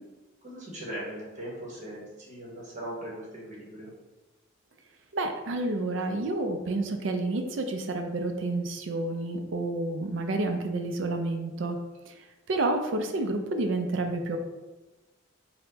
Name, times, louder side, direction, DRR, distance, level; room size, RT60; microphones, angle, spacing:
voice 1, 0.4-3.9, right 1 dB, 40° right, -4 dB, 0.9 m, -39 dB
voice 2, 5.1-11.8 12.1-12.2 12.5-14.4, right 2 dB, 75° right, 6 dB, 0.5 m, -29 dB
4.3 x 2.2 x 3.9 m, 1.2 s
head